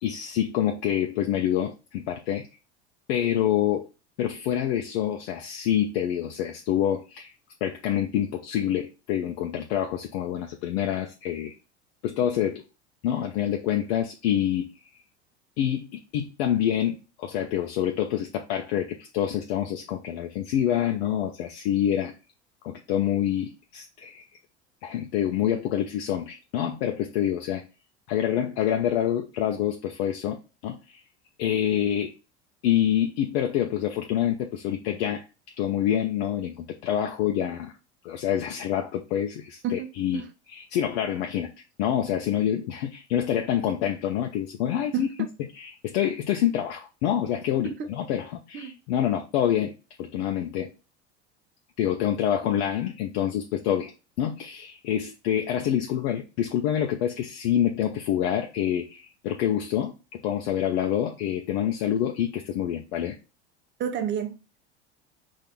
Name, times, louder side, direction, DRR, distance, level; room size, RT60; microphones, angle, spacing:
voice 1, 0.0-2.5 3.1-3.9 4.2-7.3 7.6-11.5 12.0-12.6 13.0-14.7 15.6-22.1 22.6-24.2 24.8-27.6 28.1-31.0 31.4-32.1 32.6-35.3 35.6-37.7 38.0-40.2 40.5-41.5 41.8-45.1 45.5-49.7 50.0-50.7 51.8-53.9 54.2-63.2, left 10 dB, 60° left, 0.7 m, -27 dB
voice 2, 39.6-40.3 44.9-45.3 47.6-47.9 48.5-48.8 63.8-64.4, right 6 dB, 35° right, 0.9 m, -30 dB
4.2 x 2.8 x 3.5 m
hypercardioid pair, 80°, 34 cm